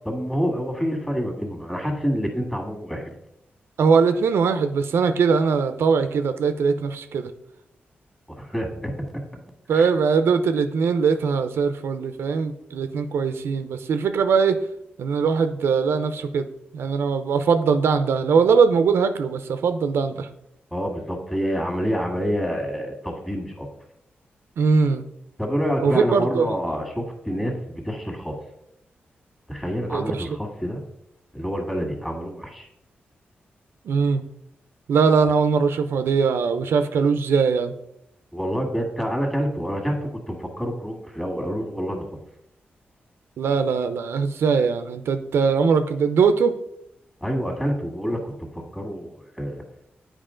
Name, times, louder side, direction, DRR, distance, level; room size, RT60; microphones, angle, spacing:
voice 1, 0.1-3.1 8.4-9.1 9.7-9.9 20.7-23.7 25.4-28.3 29.5-30.8 31.3-32.7 38.3-42.0 47.2-49.6, equal, 5° left, 2 dB, 1.8 m, -27 dB
voice 2, 3.8-7.3 9.7-14.6 15.0-16.5 16.7-20.3 24.6-25.0 25.8-26.5 29.9-30.3 33.8-34.2 34.9-37.7 43.4-46.5, right 5 dB, 85° right, 9 dB, 0.5 m, -21 dB
8.9 x 4.7 x 3.8 m, 0.79 s
cardioid pair, 90°, 4 cm